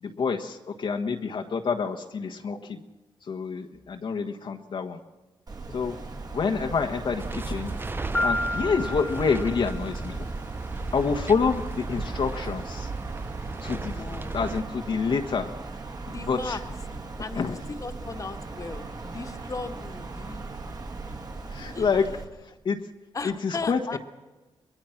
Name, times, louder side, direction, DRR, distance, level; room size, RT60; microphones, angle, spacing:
voice 1, 0.0-2.8 3.2-5.0 5.7-6.0 6.3-7.8 8.2-10.3 10.9-12.9 13.6-14.0 14.3-15.6 16.2-16.6 17.3-17.6 21.5-22.9 23.2-24.0, left 5 dB, 60° left, 3 dB, 1.4 m, -28 dB
Wind, 5.5-22.2, right 3 dB, 45° right, 2.8 m, -38 dB
sound 1, 7.2-14.6, right 3 dB, 25° right, 0.7 m, -35 dB
Piano, 8.1-10.0, left 1 dB, 15° left, 0.9 m, -30 dB
voice 2, 13.8-14.4 16.0-16.6 17.2-17.4 17.7-20.7 21.7-21.9 23.1-24.0, left 4 dB, 35° left, 7 dB, 1.7 m, -37 dB
23.0 x 21.0 x 5.9 m, 1.2 s
cardioid pair, 70°, 9 cm